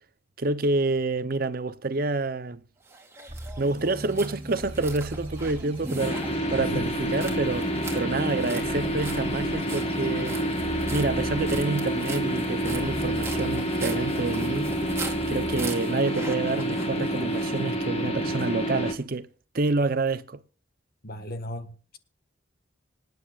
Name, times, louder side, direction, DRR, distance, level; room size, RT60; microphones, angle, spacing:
voice 1, 0.4-2.6 3.6-10.4 10.9-14.7 15.3-19.3 19.5-20.4, right 3 dB, 50° right, 0.7 m, -28 dB
sound 1, 2.9-17.6, right 3 dB, 15° right, 2.4 m, -41 dB
sound 2, 3.3-15.7, right 1 dB, 30° right, 3.0 m, -39 dB
sound 3, 6.0-18.9, equal, 35° left, 2.1 m, -28 dB
voice 2, 6.6-7.3 21.0-22.0, left 2 dB, 50° left, 1.6 m, -37 dB
26.0 x 9.5 x 2.4 m
head